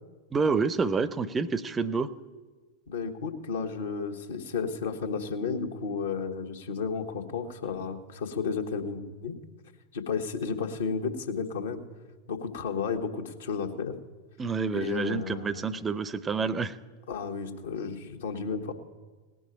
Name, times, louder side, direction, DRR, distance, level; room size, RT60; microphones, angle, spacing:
voice 1, 0.3-2.1 14.4-16.8, right 4 dB, 15° right, 17 dB, 0.6 m, -28 dB
voice 2, 2.9-9.4 9.9-11.8 12.3-13.9 14.7-15.7 17.1-18.7, left 5 dB, 65° left, 4 dB, 1.4 m, -32 dB
18.5 x 6.3 x 8.8 m, 1.4 s
figure-of-eight pair, 90°, 0 cm